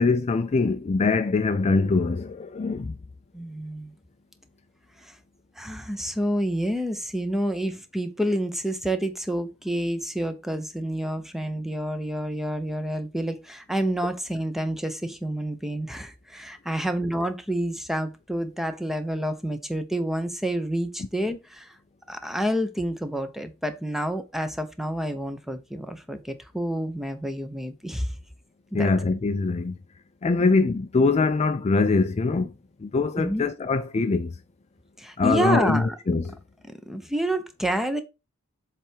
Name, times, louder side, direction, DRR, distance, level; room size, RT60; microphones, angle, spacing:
voice 1, 0.0-3.0 28.7-29.8 30.2-32.5 32.8-34.3 35.2-36.3, left 3 dB, 30° left, 0.4 m, -23 dB
voice 2, 3.3-3.9 5.0-5.2 5.6-21.8 22.1-28.1 28.7-28.9 30.4-30.5 33.1-33.5 35.0-36.0 36.7-38.0, right 1 dB, ahead, 0.7 m, -28 dB
7.4 x 3.4 x 4.5 m
head